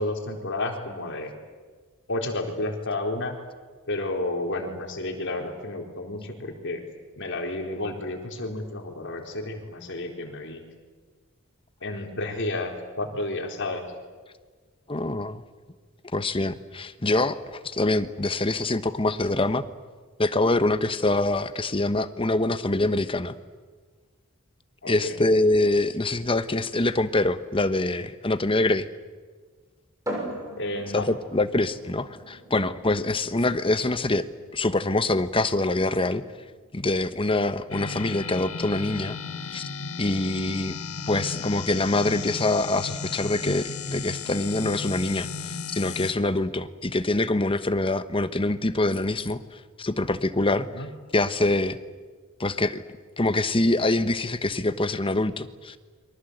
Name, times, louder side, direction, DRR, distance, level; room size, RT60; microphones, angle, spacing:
voice 1, 0.0-1.3 2.1-3.3 3.9-6.8 7.2-10.6 11.8-13.9 24.8-25.2 30.6-31.1 50.5-50.9, left 2 dB, 60° left, 3 dB, 4.0 m, -31 dB
voice 2, 14.9-15.4 16.1-19.6 20.2-23.4 24.9-28.9 30.9-34.3 34.5-36.2 36.7-39.2 39.5-39.7 40.0-40.8 41.1-50.7 51.1-51.8 52.4-52.8 53.2-55.8, left 2 dB, 25° left, 11 dB, 1.1 m, -25 dB
sound 1, 30.0-43.5, right 1 dB, 15° right, 6.7 m, -43 dB
sound 2, 37.7-46.1, left 5 dB, 80° left, 1.7 m, -35 dB
29.0 x 24.0 x 8.1 m, 1.5 s
head